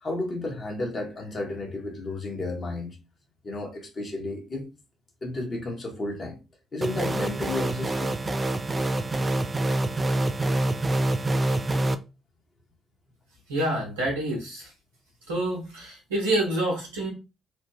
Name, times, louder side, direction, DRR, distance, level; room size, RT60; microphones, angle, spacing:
voice 1, 0.0-3.0 3.4-4.6 5.2-6.4 6.7-8.2, left 2 dB, 40° left, 1.2 m, -32 dB
sound 1, 6.8-11.9, right 1 dB, 25° right, 0.4 m, -26 dB
voice 2, 13.5-14.7 15.3-17.1, right 1 dB, 80° right, 1.1 m, -27 dB
3.3 x 2.1 x 3.3 m
figure-of-eight pair, 40°, 0 cm